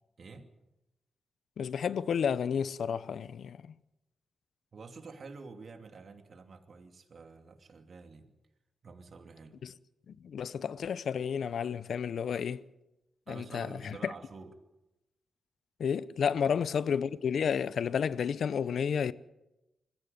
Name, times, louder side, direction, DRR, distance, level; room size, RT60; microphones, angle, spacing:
voice 1, 0.2-0.5 4.7-8.3 8.8-9.6 13.3-14.5 16.3-16.4, right 4 dB, 55° right, 2.7 m, -48 dB
voice 2, 1.6-3.7 9.6-9.7 10.1-12.6 13.3-14.1 15.8-19.1, left 7 dB, 70° left, 0.8 m, -31 dB
21.5 x 15.0 x 9.4 m
cardioid pair, 60°, 0 cm